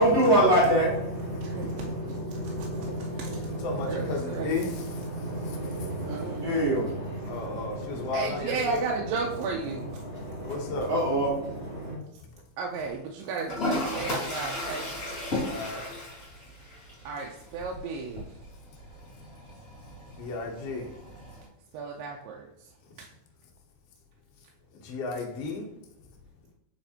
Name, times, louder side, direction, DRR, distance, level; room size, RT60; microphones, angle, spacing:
voice 1, 0.0-8.6 9.7-12.0, right 1 dB, 35° right, -6 dB, 2.5 m, -28 dB
voice 2, 1.4-2.4 3.0-3.4 3.8-4.8 6.1-6.7 8.1-10.0 12.6-15.0 17.1-18.4 21.7-22.7 23.0-23.1, right 4 dB, 85° right, 0 dB, 2.3 m, -34 dB
voice 3, 3.6-4.7 7.3-8.8 10.4-10.9 15.5-15.9 20.2-20.9 24.7-25.7, left 3 dB, 70° left, 1 dB, 1.5 m, -33 dB
Toilet flush, 13.5-21.5, left 1 dB, 35° left, 1.8 m, -35 dB
7.5 x 4.9 x 2.8 m, 0.84 s
omnidirectional pair, 3.9 m